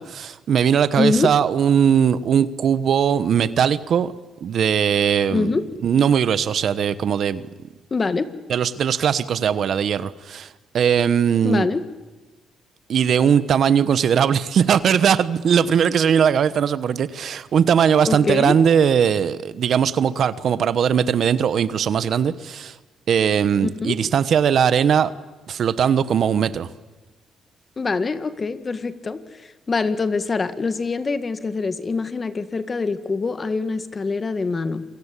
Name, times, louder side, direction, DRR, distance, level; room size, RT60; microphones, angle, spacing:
voice 1, 0.0-4.1 4.4-7.5 8.5-11.7 12.9-22.8 23.1-25.1 25.5-26.7, right 8 dB, 60° right, 15 dB, 1.2 m, -19 dB
voice 2, 1.0-1.3 5.3-5.6 7.9-8.3 11.4-11.8 18.1-18.6 23.6-24.0 27.8-34.8, left 4 dB, 35° left, 12 dB, 1.9 m, -24 dB
27.5 x 24.0 x 8.5 m, 1.2 s
cardioid pair, 90°, 0 cm